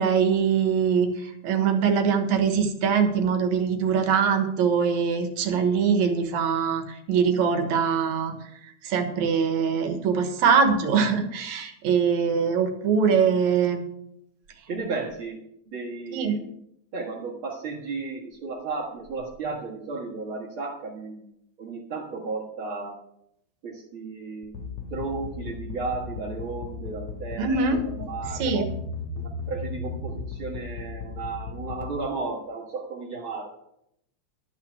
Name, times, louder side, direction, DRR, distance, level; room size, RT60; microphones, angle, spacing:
voice 1, 0.0-8.3 8.8-13.8 16.1-16.4 27.4-28.1 28.4-28.7, right 6 dB, 75° right, 6 dB, 2.6 m, -23 dB
voice 2, 14.7-16.5 16.9-21.2 21.6-23.0 23.6-24.6 24.9-28.6 29.1-33.5, right 4 dB, 50° right, -2 dB, 2.3 m, -34 dB
sound 1, 24.4-31.8, left 6 dB, 65° left, 2.8 m, -35 dB
12.5 x 5.9 x 8.1 m, 0.78 s
omnidirectional pair, 3.4 m